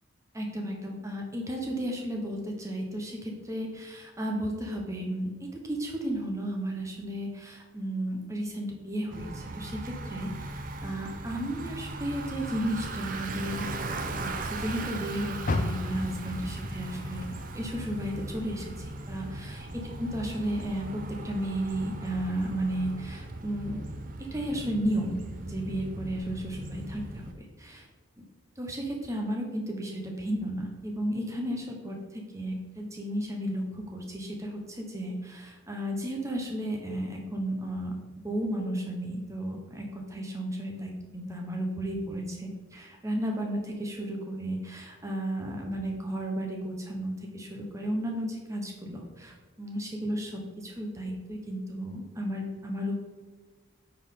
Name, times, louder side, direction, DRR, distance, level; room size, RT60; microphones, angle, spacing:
voice 1, 0.3-5.3 5.6-13.7 14.2-17.3 17.5-20.9 21.2-23.8 24.3-27.9 28.6-32.0 32.3-37.9 38.2-52.9, right 1 dB, 15° right, 1 dB, 1.0 m, -33 dB
Bicycle, 9.1-27.3, right 2 dB, 40° right, 0.6 m, -38 dB
Car, 15.4-18.7 19.1-20.5 20.9-21.0 21.6-21.7, left 2 dB, 40° left, 0.5 m, -35 dB
8.8 x 4.7 x 3.8 m, 1.4 s
head